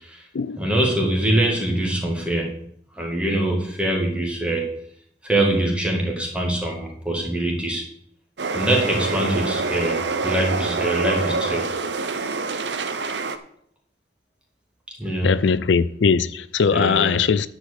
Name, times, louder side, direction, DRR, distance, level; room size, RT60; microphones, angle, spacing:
voice 1, 0.6-2.7 2.9-4.7 5.2-7.8 8.5-11.7 15.0-15.5 16.7-17.2, right 1 dB, 5° right, 2.2 m, -23 dB
sound 1, 8.4-13.4, right 3 dB, 75° right, 0.8 m, -26 dB
voice 2, 15.2-17.5, left 5 dB, 85° left, 0.5 m, -20 dB
10.0 x 5.1 x 8.2 m
head